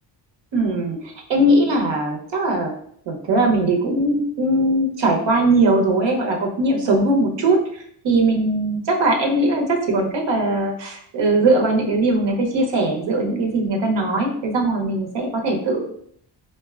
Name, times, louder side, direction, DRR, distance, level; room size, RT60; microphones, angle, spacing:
voice 1, 0.5-2.7 3.1-15.9, right 2 dB, 70° right, 1 dB, 0.8 m, -20 dB
4.0 x 2.1 x 2.3 m, 0.65 s
cardioid pair, 90°, 44 cm